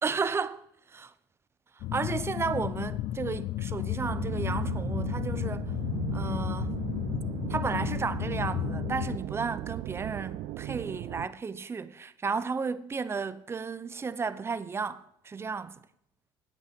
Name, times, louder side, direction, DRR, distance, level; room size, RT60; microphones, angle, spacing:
voice 1, 0.0-0.6 0.9-1.1 1.8-5.7 6.1-6.8 7.5-15.8, right 5 dB, 25° right, 0.7 m, -33 dB
sound 1, 1.8-9.2, left 14 dB, 65° left, 0.5 m, -33 dB
sound 2, 4.0-11.3, right 15 dB, 65° right, 0.5 m, -37 dB
9.2 x 8.5 x 6.5 m
supercardioid pair, 85°, 10 cm